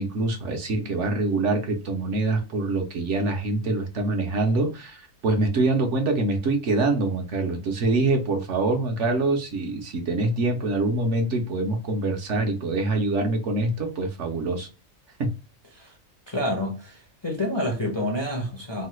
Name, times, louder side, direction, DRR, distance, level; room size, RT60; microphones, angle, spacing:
voice 1, 0.0-14.7 15.2-15.3, right 2 dB, 65° right, 1.0 m, -25 dB
voice 2, 16.3-18.9, left 1 dB, 35° left, 0.5 m, -28 dB
3.1 x 2.2 x 3.0 m
omnidirectional pair, 1.4 m